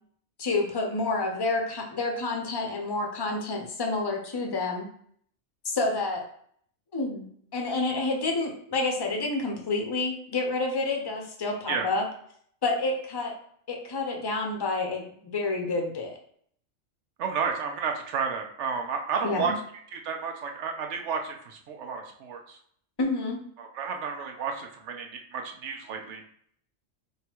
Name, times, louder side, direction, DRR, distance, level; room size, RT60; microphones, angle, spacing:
voice 1, 0.4-4.9 5.6-6.2 6.9-7.3 7.5-12.1 12.6-13.4 13.7-16.2 19.2-19.5 23.0-23.4, left 3 dB, 25° left, 1 dB, 0.6 m, -29 dB
voice 2, 17.2-19.5 19.9-22.6 23.6-26.2, right 6 dB, 70° right, 3 dB, 1.0 m, -32 dB
3.8 x 2.3 x 4.3 m, 0.62 s
omnidirectional pair, 1.3 m